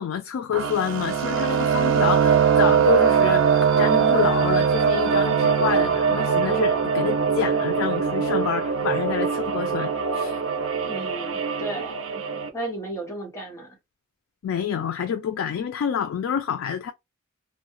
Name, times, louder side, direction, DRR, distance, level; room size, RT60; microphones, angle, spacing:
voice 1, 0.0-10.4 14.4-16.9, left 8 dB, 85° left, 0.3 m, -28 dB
sound 1, 0.5-12.5, right 7 dB, 75° right, 0.5 m, -22 dB
voice 2, 10.9-12.2 12.5-13.8, right 2 dB, 15° left, 1.1 m, -34 dB
2.3 x 2.1 x 3.0 m
head